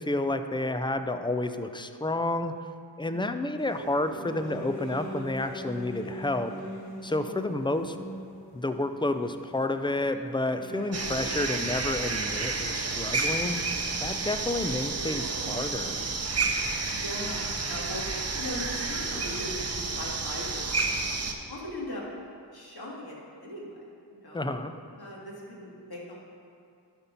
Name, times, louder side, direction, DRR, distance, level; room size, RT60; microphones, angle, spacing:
voice 1, 0.0-2.5 3.0-6.5 7.0-8.0 8.5-13.6 14.0-16.0 24.3-24.7, left 2 dB, 10° left, 9 dB, 0.4 m, -30 dB
voice 2, 3.0-3.5 7.0-7.5 17.0-21.0 21.5-22.0 22.5-23.8 24.1-24.6 25.0-26.2, left 1 dB, 55° left, -4 dB, 2.2 m, -40 dB
sound 1, 3.6-11.0, equal, 90° left, 2.1 m, -42 dB
sound 2, 3.7-5.3 6.9-8.1 10.9-11.7 15.0-16.6, right 3 dB, 60° right, 0.8 m, -46 dB
sound 3, 10.9-21.3, right 3 dB, 35° right, 0.8 m, -30 dB
11.5 x 4.3 x 5.3 m, 2.4 s
cardioid pair, 55°, 43 cm